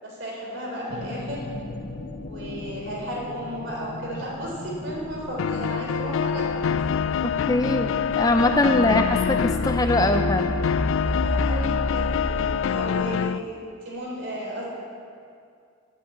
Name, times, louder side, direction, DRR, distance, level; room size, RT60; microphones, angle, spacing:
voice 1, 0.0-1.4 2.2-6.7 11.0-13.6 13.9-14.7, equal, 65° right, -2 dB, 3.7 m, -34 dB
sound 1, 0.9-12.6, left 1 dB, 55° left, 0.7 m, -33 dB
sound 2, 5.4-13.4, left 7 dB, 80° left, 0.3 m, -26 dB
voice 2, 7.2-10.5, left 1 dB, 20° left, 6 dB, 0.4 m, -22 dB
10.0 x 8.5 x 8.4 m, 2.3 s
head